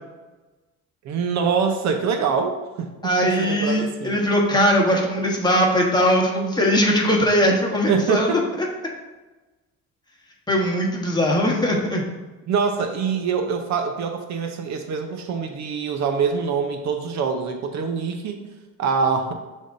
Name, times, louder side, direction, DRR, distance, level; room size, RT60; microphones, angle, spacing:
voice 1, 1.0-4.2 7.9-8.4 12.5-18.4 18.8-19.3, right 5 dB, 60° right, 6 dB, 0.7 m, -24 dB
voice 2, 3.0-8.3 10.5-12.0, equal, 15° left, -1 dB, 1.1 m, -20 dB
10.5 x 3.6 x 2.6 m, 1.2 s
cardioid pair, 125°, 31 cm